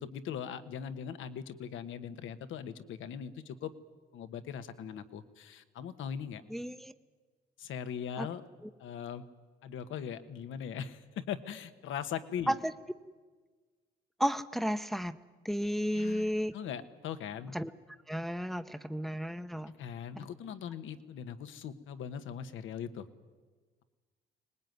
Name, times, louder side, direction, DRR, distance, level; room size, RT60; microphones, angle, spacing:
voice 1, 0.0-3.7 4.1-6.4 7.6-8.4 8.8-9.2 9.6-12.5 15.9-17.5 19.8-23.1, left 8 dB, 80° left, 11 dB, 1.4 m, -40 dB
voice 2, 6.5-6.9 8.2-8.3 12.5-12.7 14.2-15.2 15.4-16.5 17.5-17.7 18.1-19.8, equal, ahead, 8 dB, 0.8 m, -33 dB
24.0 x 19.5 x 9.5 m, 1.4 s
cardioid pair, 90°, 20 cm